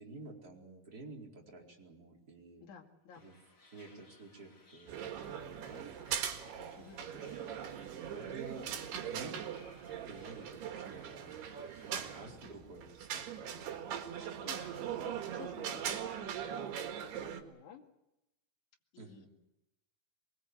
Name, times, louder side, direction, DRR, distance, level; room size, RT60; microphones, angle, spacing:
voice 1, 0.0-2.6 3.2-3.4 3.7-5.9 6.4-7.8 8.1-8.7 9.0-11.6 11.8-14.5 19.0-19.3, right 3 dB, 25° right, -1 dB, 4.8 m, -52 dB
voice 2, 2.6-3.2 6.8-7.1 12.3-12.6 13.4-14.0 14.4-17.8 18.9-19.3, left 7 dB, 55° left, 2 dB, 3.5 m, -54 dB
sound 1, 3.1-12.3, left 3 dB, 25° left, 4.3 m, -63 dB
sound 2, 4.9-17.4, right 9 dB, 90° right, 3.8 m, -41 dB
24.5 x 21.5 x 8.1 m, 0.92 s
omnidirectional pair, 4.5 m